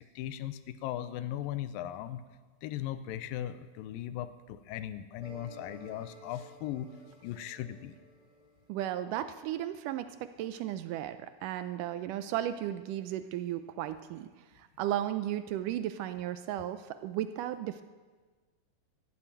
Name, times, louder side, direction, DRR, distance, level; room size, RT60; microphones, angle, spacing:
voice 1, 0.2-2.2 2.6-6.9 7.2-8.0, left 12 dB, 80° left, 12 dB, 2.3 m, -38 dB
sound 1, 5.2-9.1, right 1 dB, ahead, 3.2 m, -53 dB
voice 2, 8.7-14.3 14.6-17.8, right 12 dB, 80° right, 11 dB, 1.9 m, -35 dB
13.0 x 11.5 x 8.9 m, 1.4 s
omnidirectional pair, 4.2 m